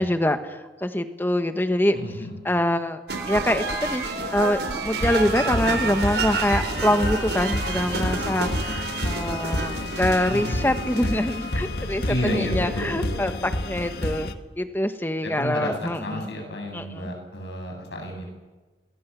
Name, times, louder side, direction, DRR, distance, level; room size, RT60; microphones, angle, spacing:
voice 1, 0.0-2.0 2.4-3.0 3.3-14.3 14.6-16.3 16.7-17.1, left 1 dB, 10° left, 8 dB, 1.3 m, -25 dB
voice 2, 1.9-2.4 10.3-10.7 12.1-13.2 15.2-18.3, left 1 dB, 85° left, 3 dB, 7.5 m, -31 dB
sound 1, 3.1-11.6, right 3 dB, 75° right, 3.9 m, -30 dB
sound 2, 5.0-14.3, left 1 dB, 65° left, 1.6 m, -29 dB
26.5 x 21.0 x 7.0 m, 1.2 s
head